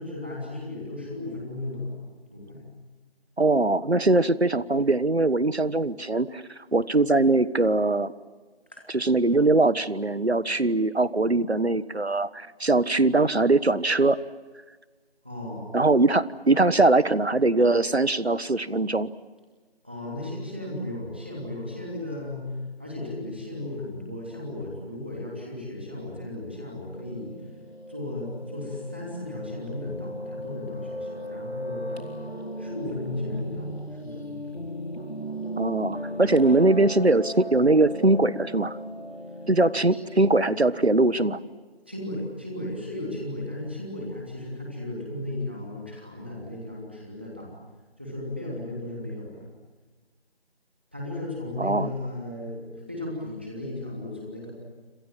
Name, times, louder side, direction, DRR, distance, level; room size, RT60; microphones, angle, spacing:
voice 1, 0.0-1.9 2.3-2.6 8.7-8.8 15.2-15.7 19.8-22.4 22.8-27.3 27.9-31.9 32.6-34.6 41.9-47.5 48.0-49.4 50.9-54.5, left 1 dB, 10° right, -3 dB, 3.0 m, -35 dB
voice 2, 3.4-6.4 6.7-8.1 8.9-14.2 15.7-19.1 35.6-38.8 39.5-41.4 51.6-51.9, right 2 dB, 85° right, 16 dB, 1.4 m, -21 dB
Piano, 26.9-41.4, equal, 75° left, 4.4 m, -37 dB
29.5 x 27.0 x 7.5 m, 1.3 s
figure-of-eight pair, 175°, 31 cm